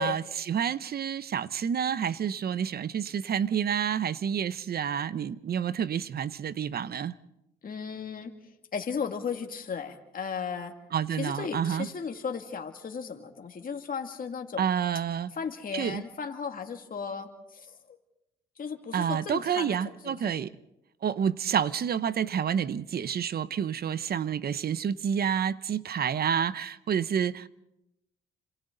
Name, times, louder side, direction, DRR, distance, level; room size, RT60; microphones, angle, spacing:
voice 1, 0.0-7.1 10.9-11.9 14.6-15.3 15.7-16.0 18.9-20.5 21.0-27.5, right 8 dB, 50° right, 0.9 m, -29 dB
voice 2, 7.6-8.3 8.7-10.7 11.1-14.6 15.3-18.0 18.6-20.3, left 6 dB, 45° left, 2.5 m, -35 dB
29.5 x 26.5 x 4.0 m
cardioid pair, 90°, 20 cm